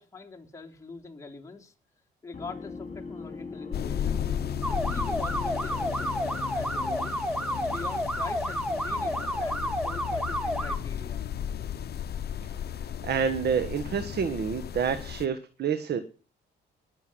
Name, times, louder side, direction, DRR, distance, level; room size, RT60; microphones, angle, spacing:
voice 1, 0.0-1.7 2.2-7.2 7.6-11.2, left 4 dB, 15° left, 0 dB, 3.3 m, -44 dB
sound 1, 2.3-8.1, left 4 dB, 35° left, 5.0 m, -41 dB
sound 2, 3.7-15.3, left 9 dB, 55° left, 0.8 m, -34 dB
sound 3, 4.6-10.8, equal, 5° right, 1.6 m, -30 dB
voice 2, 13.0-16.0, right 7 dB, 55° right, 10 dB, 1.5 m, -28 dB
20.0 x 7.1 x 6.2 m, 0.38 s
cardioid pair, 90°, 20 cm